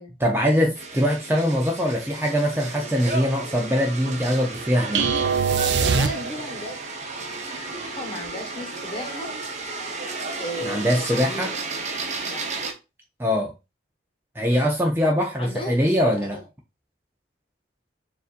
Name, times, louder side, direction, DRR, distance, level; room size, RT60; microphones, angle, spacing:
voice 1, 0.2-5.1 10.6-11.5 13.2-13.5 14.3-16.4, equal, 10° right, 0.5 m, -22 dB
sound 1, 0.8-12.7, right 3 dB, 35° right, 0.8 m, -33 dB
sound 2, 4.9-6.7, right 6 dB, 60° right, 0.5 m, -22 dB
voice 2, 5.7-6.8 7.8-9.3 10.4-11.5 12.2-12.4 15.4-16.5, left 1 dB, 25° left, 1.3 m, -35 dB
6.8 x 2.6 x 2.5 m
head